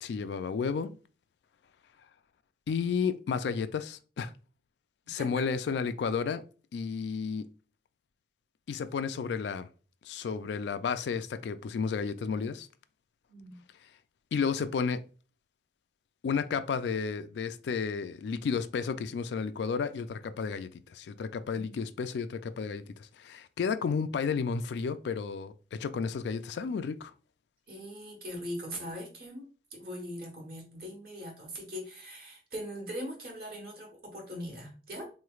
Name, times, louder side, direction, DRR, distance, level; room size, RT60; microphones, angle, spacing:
voice 1, 0.0-1.0 2.7-4.3 5.1-6.4 6.7-7.5 8.7-9.7 10.0-12.7 14.3-15.0 16.2-27.1, left 5 dB, 70° left, 0.3 m, -32 dB
voice 2, 5.0-5.5 13.3-13.6 21.5-21.8 27.7-35.1, equal, 55° right, 1.2 m, -41 dB
3.6 x 3.1 x 2.3 m
head